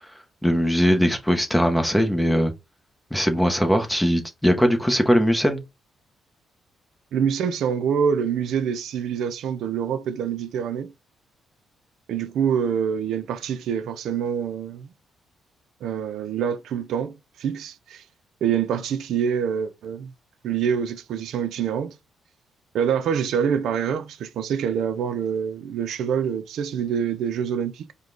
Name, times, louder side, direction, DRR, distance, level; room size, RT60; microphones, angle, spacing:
voice 1, 0.4-2.5 3.1-5.6, equal, 5° left, 0.8 m, -20 dB
voice 2, 7.1-10.9 12.1-14.9 15.8-18.0 18.4-20.1 20.4-21.9 22.7-27.9, right 7 dB, 75° right, 0.4 m, -26 dB
5.0 x 2.2 x 3.8 m
cardioid pair, 130°, 0 cm